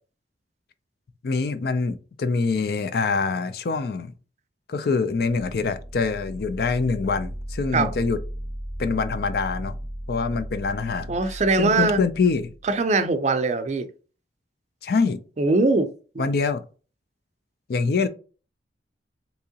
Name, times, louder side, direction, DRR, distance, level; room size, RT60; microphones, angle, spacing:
voice 1, 1.2-4.1 4.7-8.2 8.8-9.8 10.1-12.5 14.8-15.2 16.2-16.6 17.7-18.1, left 4 dB, 60° left, 0.4 m, -25 dB
sound 1, 5.0-12.7, equal, 80° left, 1.4 m, -36 dB
voice 2, 11.1-12.0 12.6-13.9 15.4-15.9 16.1-16.2, right 3 dB, 40° right, 0.4 m, -21 dB
3.6 x 2.9 x 2.7 m
head